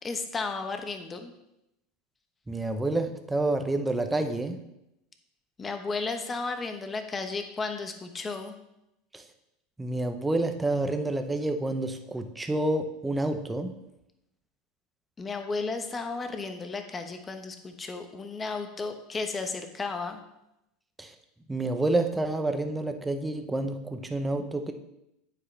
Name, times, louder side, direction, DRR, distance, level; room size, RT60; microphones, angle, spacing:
voice 1, 0.0-1.3 5.6-8.6 15.2-20.2, left 4 dB, 20° left, 6 dB, 1.1 m, -34 dB
voice 2, 2.5-4.6 9.8-13.7 21.0-21.1 21.5-24.7, right 2 dB, 10° right, 6 dB, 0.8 m, -28 dB
9.6 x 8.3 x 3.3 m, 0.85 s
supercardioid pair, 130°, 0 cm